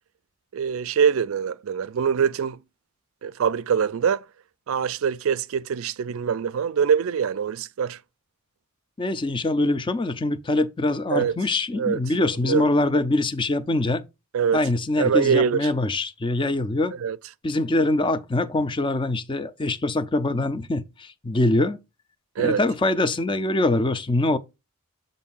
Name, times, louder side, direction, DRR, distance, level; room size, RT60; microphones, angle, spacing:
voice 1, 0.5-2.6 3.2-4.2 4.7-8.0 11.1-11.3 11.7-12.0 12.4-12.7 14.3-14.6 15.0-15.7 17.0-17.2 22.4-22.6, right 7 dB, 70° right, 0.4 m, -23 dB
voice 2, 9.0-14.0 14.5-17.0 17.4-21.8 22.4-24.4, left 2 dB, 25° left, 0.4 m, -23 dB
7.4 x 2.6 x 5.4 m
head